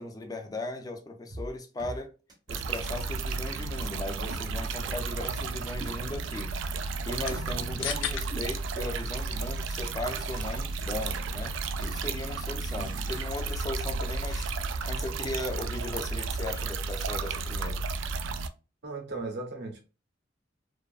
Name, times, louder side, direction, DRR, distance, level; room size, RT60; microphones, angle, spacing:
voice 1, 0.0-2.1 2.5-6.6 7.0-11.5 11.8-14.5 14.8-17.8, left 2 dB, 20° left, 0.4 m, -37 dB
sound 1, 1.3-1.5 1.8-2.0 2.3-2.4 2.8-2.9 3.3-3.4 3.8-3.9 4.3-4.9 5.3-5.4 5.8-6.4 6.8-6.9 7.3-9.9 10.3-11.2 11.8-11.9 12.8-13.8 14.3-14.6, right 1 dB, 20° right, 0.6 m, -48 dB
sound 2, 2.5-18.5, right 4 dB, 80° right, 0.3 m, -33 dB
sound 3, 5.6-16.3, left 8 dB, 85° left, 0.4 m, -45 dB
voice 2, 12.8-13.1 18.8-19.8, right 3 dB, 60° right, 0.7 m, -37 dB
2.6 x 2.3 x 2.3 m
head